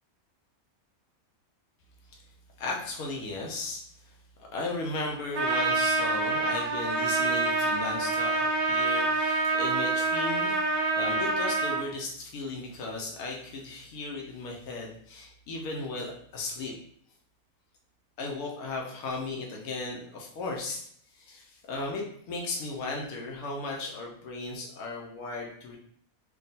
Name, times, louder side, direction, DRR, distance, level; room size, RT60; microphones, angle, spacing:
voice 1, 2.6-4.2 4.5-16.7 18.2-25.8, left 3 dB, 80° left, -1 dB, 1.1 m, -36 dB
Trumpet, 5.3-11.8, right 3 dB, 75° right, 1.0 m, -26 dB
3.6 x 2.3 x 4.0 m, 0.66 s
omnidirectional pair, 1.5 m